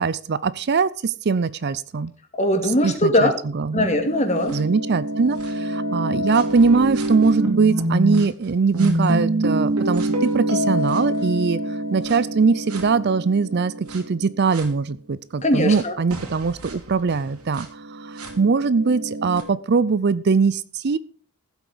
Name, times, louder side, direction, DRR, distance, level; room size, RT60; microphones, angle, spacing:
voice 1, 0.0-2.1 2.8-3.9 4.5-11.6 11.9-21.0, right 4 dB, 50° right, 18 dB, 0.5 m, -21 dB
voice 2, 2.4-3.3 3.7-4.6 15.4-15.9, left 1 dB, 30° left, 5 dB, 2.3 m, -20 dB
sound 1, 3.9-8.2 8.7-14.7 15.7-15.8 16.1-19.4, right 1 dB, 85° right, 2.7 m, -26 dB
15.0 x 8.2 x 5.0 m, 0.41 s
head